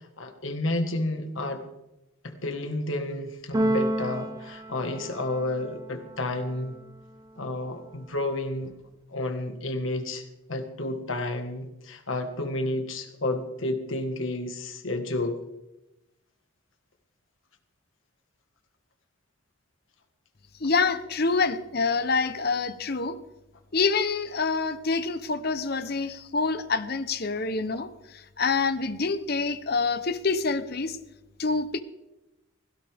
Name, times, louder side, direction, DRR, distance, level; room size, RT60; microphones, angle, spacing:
voice 1, 0.2-1.6 2.2-6.7 7.4-8.7 9.1-10.2 10.5-15.4, left 2 dB, 70° left, 6 dB, 1.7 m, -31 dB
Keyboard (musical), 3.5-5.6, right 1 dB, 15° right, 0.6 m, -29 dB
voice 2, 20.6-23.2 23.7-27.9 28.1-31.0 31.4-31.8, left 4 dB, 50° left, 11 dB, 0.9 m, -26 dB
17.0 x 16.5 x 3.6 m, 0.95 s
head